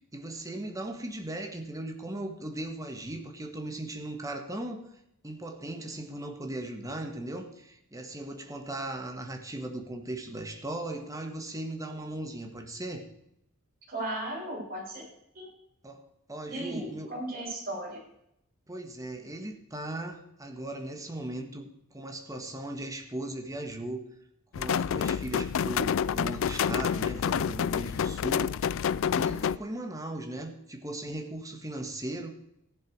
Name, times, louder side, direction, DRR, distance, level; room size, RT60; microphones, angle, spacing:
voice 1, 0.1-4.9 5.2-13.1 15.8-17.1 18.7-24.0 24.5-28.7 29.1-32.3, right 1 dB, 15° right, 4 dB, 1.7 m, -38 dB
voice 2, 13.9-15.0 15.3-15.5 16.5-18.0, right 1 dB, 45° right, -3 dB, 6.7 m, -36 dB
sound 1, 24.5-29.6, left 7 dB, 65° left, 0.4 m, -28 dB
14.5 x 11.5 x 4.8 m, 0.78 s
head